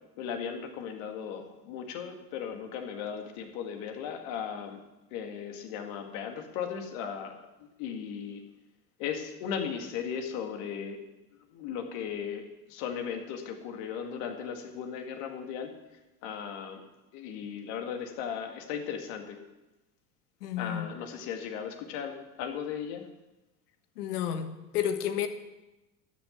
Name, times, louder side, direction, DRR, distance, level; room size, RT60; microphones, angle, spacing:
voice 1, 0.2-4.8 5.1-7.3 7.6-8.4 9.0-11.0 11.5-15.7 16.2-16.8 17.1-19.4 20.6-23.0, left 7 dB, 70° left, 4 dB, 2.2 m, -37 dB
voice 2, 20.4-20.9 24.0-25.3, left 9 dB, 85° left, 9 dB, 1.3 m, -31 dB
12.0 x 6.7 x 8.1 m, 1.0 s
hypercardioid pair, 85°, 46 cm